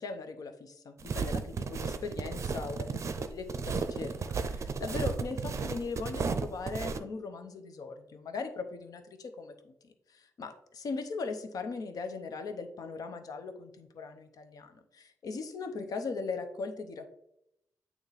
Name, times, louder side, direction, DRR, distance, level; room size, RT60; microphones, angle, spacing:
voice 1, 0.0-17.1, left 4 dB, 70° left, 7 dB, 0.8 m, -39 dB
sound 1, 1.0-7.0, right 5 dB, 50° right, 0.5 m, -34 dB
8.6 x 3.0 x 4.0 m, 0.80 s
wide cardioid pair, 125°, 7 cm